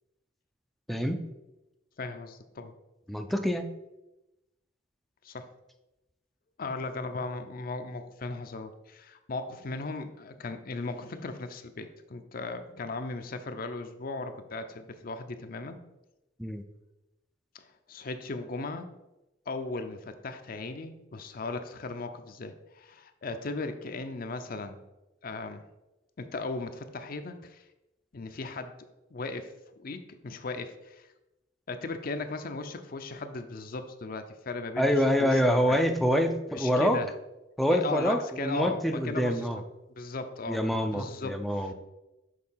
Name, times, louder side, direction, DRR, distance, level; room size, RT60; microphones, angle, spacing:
voice 1, 2.0-2.7 5.2-5.5 6.6-15.8 17.5-18.9 19.5-24.8 25.2-25.6 26.2-27.6 28.1-28.8 29.1-29.5 29.8-31.1 31.7-35.8 36.5-37.1 37.7-39.5 39.9-40.6 40.9-41.7, left 3 dB, 50° left, 8 dB, 0.6 m, -37 dB
voice 2, 3.1-3.6 16.4-16.6 34.8-37.0 37.6-39.6 40.5-41.7, equal, ahead, 5 dB, 0.4 m, -26 dB
6.6 x 3.9 x 5.6 m, 0.97 s
head